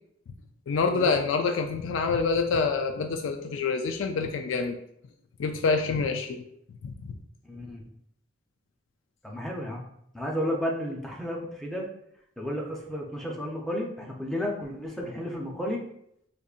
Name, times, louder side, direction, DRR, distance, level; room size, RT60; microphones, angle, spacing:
voice 1, 0.7-4.8 5.4-6.4 6.8-7.2, left 4 dB, 85° left, 6 dB, 0.3 m, -26 dB
voice 2, 7.4-7.8 9.2-9.8 10.1-11.9 12.4-15.8, equal, ahead, -1 dB, 0.6 m, -32 dB
5.1 x 2.6 x 2.4 m, 0.73 s
head